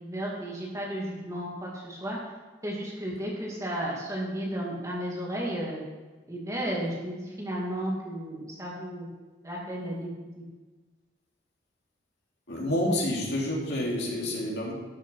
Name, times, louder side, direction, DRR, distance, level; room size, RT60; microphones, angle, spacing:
voice 1, 0.0-2.2 2.6-5.8 6.3-9.1 9.4-10.1 10.4-10.5, right 1 dB, 15° right, -4 dB, 2.7 m, -33 dB
voice 2, 12.5-14.7, left 1 dB, 60° left, -3 dB, 3.0 m, -28 dB
13.0 x 7.2 x 5.7 m, 1.3 s
head